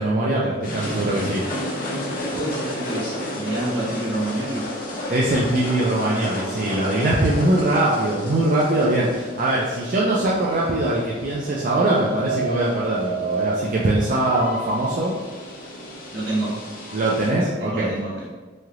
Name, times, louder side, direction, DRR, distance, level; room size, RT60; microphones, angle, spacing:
voice 1, 0.0-1.4 5.1-15.1 16.9-17.9, right 1 dB, 45° right, -6 dB, 0.4 m, -22 dB
sound 1, 0.6-17.3, equal, 45° left, 0.5 m, -31 dB
voice 2, 2.3-4.7 16.1-16.6 17.6-18.3, right 1 dB, 75° right, -7 dB, 1.2 m, -27 dB
3.2 x 2.8 x 2.4 m, 1.3 s
head